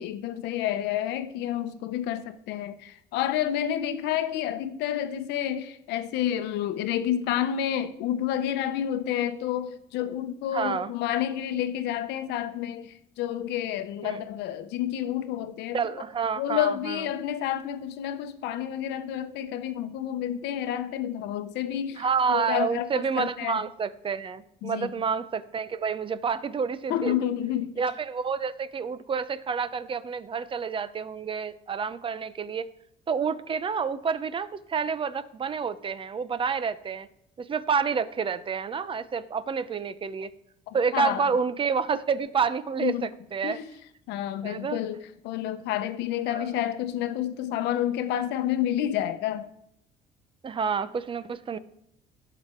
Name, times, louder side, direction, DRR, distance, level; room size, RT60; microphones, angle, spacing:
voice 1, 0.0-15.8 16.4-22.9 23.2-23.6 24.6-24.9 26.9-27.8 40.7-41.3 42.8-43.1 43.4-43.7 44.1-49.5, left 11 dB, 90° left, 0.9 m, -29 dB
voice 2, 10.5-10.9 14.0-14.3 15.7-17.1 22.0-27.1 27.8-32.7 33.1-37.1 37.4-40.3 40.7-43.6 44.4-44.8 46.3-46.5 50.4-51.6, right 6 dB, 30° right, 0.7 m, -29 dB
17.0 x 6.0 x 4.5 m
cardioid pair, 110°, 17 cm